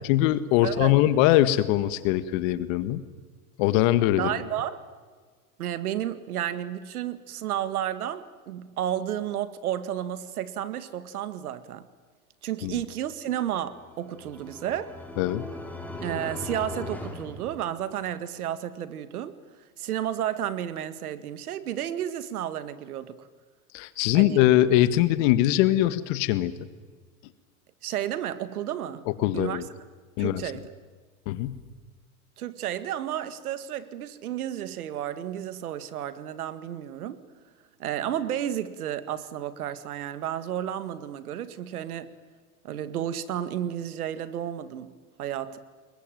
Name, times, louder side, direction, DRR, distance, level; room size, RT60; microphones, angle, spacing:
voice 1, 0.0-3.0 3.6-4.4 12.6-12.8 15.2-15.4 23.7-26.5 29.1-29.6 30.2-30.4 31.3-31.6, left 14 dB, 60° left, 13 dB, 1.8 m, -22 dB
voice 2, 0.6-1.0 4.2-4.8 5.6-11.9 12.4-14.9 16.0-19.4 19.8-23.2 24.1-24.4 27.8-29.1 29.3-29.6 30.2-30.7 32.4-37.2 37.8-42.1 42.6-44.9 45.2-45.6, right 11 dB, 80° right, 13 dB, 2.1 m, -32 dB
sound 1, 13.7-18.2, left 2 dB, 5° left, 4.7 m, -39 dB
27.0 x 22.0 x 9.2 m, 1.5 s
hypercardioid pair, 105°, 43 cm